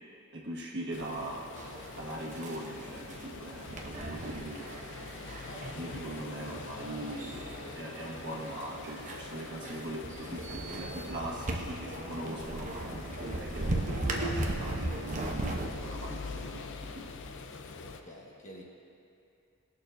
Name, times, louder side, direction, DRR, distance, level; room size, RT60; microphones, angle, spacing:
voice 1, 0.3-1.4 1.9-4.9 5.7-17.1, right 1 dB, 55° right, -4 dB, 1.6 m, -41 dB
sound 1, 0.9-18.0, left 4 dB, 60° left, 0.5 m, -44 dB
sound 2, 1.6-15.8, right 1 dB, 35° right, 0.8 m, -38 dB
voice 2, 5.4-5.7 17.8-18.6, equal, 35° left, -3 dB, 1.3 m, -49 dB
sound 3, 13.1-17.3, right 1 dB, 90° right, 1.3 m, -53 dB
19.0 x 6.5 x 2.6 m, 2.6 s
head